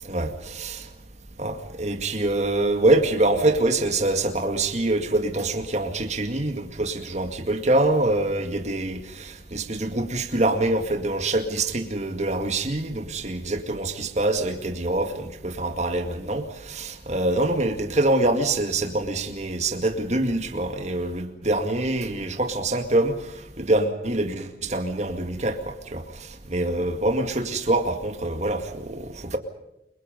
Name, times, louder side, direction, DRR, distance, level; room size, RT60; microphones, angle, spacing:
voice 1, 0.0-0.9 1.4-23.1 23.6-29.4, right 2 dB, 40° right, 2.2 m, -25 dB
29.5 x 23.5 x 5.3 m
head